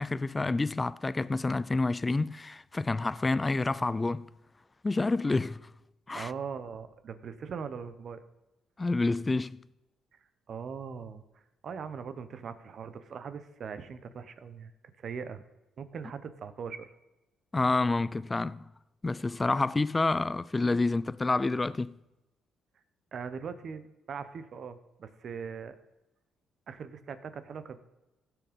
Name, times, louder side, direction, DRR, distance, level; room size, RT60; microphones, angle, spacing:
voice 1, 0.0-4.3 4.8-5.7 6.1-6.3 8.8-9.7 17.5-18.7 19.0-21.9, left 3 dB, 20° left, 0.4 m, -28 dB
voice 2, 6.1-8.2 10.5-11.2 11.6-14.7 15.0-15.4 15.8-16.9 23.1-25.8 26.7-27.8, right 6 dB, 55° right, 1.0 m, -40 dB
16.0 x 6.2 x 5.2 m
cardioid pair, 90°, 0 cm